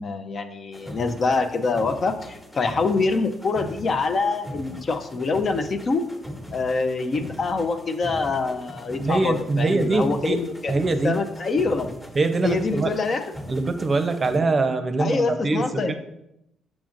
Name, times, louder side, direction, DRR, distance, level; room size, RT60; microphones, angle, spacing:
voice 1, 0.0-6.0 6.5-12.0 12.4-13.3 15.0-16.0, left 3 dB, 45° left, 7 dB, 0.6 m, -25 dB
sound 1, 0.7-14.4, equal, 20° left, 1.2 m, -40 dB
voice 2, 9.0-10.4 10.7-11.2 12.2-12.9 13.5-16.0, right 3 dB, 35° right, 8 dB, 0.6 m, -23 dB
7.3 x 6.1 x 2.5 m, 0.82 s
cardioid pair, 90°, 0 cm